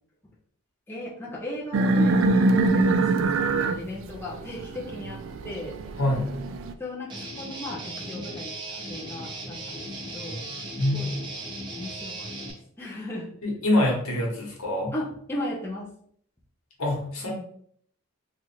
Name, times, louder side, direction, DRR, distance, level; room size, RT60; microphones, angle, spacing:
voice 1, 0.9-5.8 6.8-10.5 10.9-11.3 11.8-13.3 14.9-15.9, left 1 dB, 10° left, -4 dB, 0.5 m, -36 dB
sound 1, 1.7-6.7, right 2 dB, 60° right, 0.3 m, -23 dB
voice 2, 6.0-6.4 10.8-11.1 13.4-14.9 16.8-17.3, left 1 dB, 75° left, -1 dB, 1.1 m, -25 dB
Guitar, 7.1-12.5, right 1 dB, 20° right, 0.7 m, -37 dB
2.9 x 2.4 x 4.1 m, 0.64 s
head